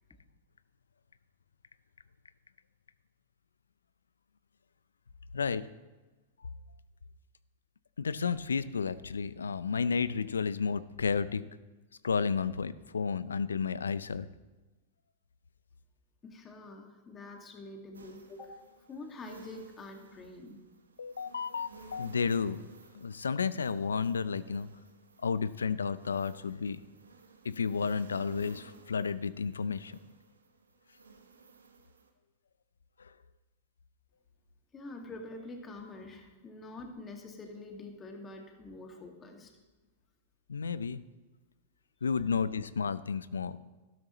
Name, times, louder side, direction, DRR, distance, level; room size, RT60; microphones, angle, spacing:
voice 1, 8.0-11.4 12.0-14.3 21.0-22.6 22.9-24.7 25.2-26.8 27.4-30.0 40.5-41.0 42.0-43.6, left 5 dB, 85° left, 16 dB, 0.5 m, -32 dB
voice 2, 16.2-18.6 18.9-20.6 34.7-39.5, left 2 dB, 25° left, 3 dB, 2.0 m, -46 dB
sound 1, 17.9-32.1, right 5 dB, 90° right, 1.1 m, -55 dB
12.5 x 12.5 x 3.1 m, 1.2 s
hypercardioid pair, 105°, 0 cm